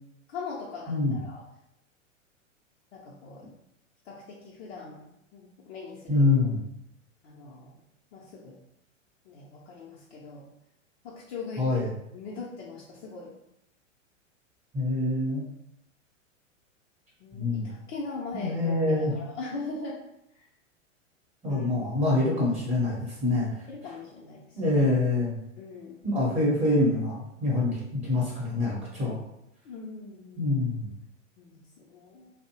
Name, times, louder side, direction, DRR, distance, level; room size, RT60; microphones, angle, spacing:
voice 1, 0.3-1.4 2.9-3.5 4.0-5.1 5.3-6.3 7.2-7.8 8.1-8.6 9.2-10.5 11.0-11.8 12.1-13.3 17.2-20.0 20.3-20.4 21.5-21.7 23.7-24.9 25.6-26.0 29.6-30.5 31.4-32.3, left 4 dB, 50° left, -5 dB, 0.6 m, -41 dB
voice 2, 6.1-6.6 11.6-11.9 14.7-15.5 17.3-17.7 18.3-19.1 21.4-23.6 24.5-25.4 26.0-29.2 30.4-30.9, left 2 dB, 15° right, -6 dB, 0.8 m, -25 dB
2.6 x 2.0 x 2.8 m, 0.81 s
figure-of-eight pair, 105°, 39 cm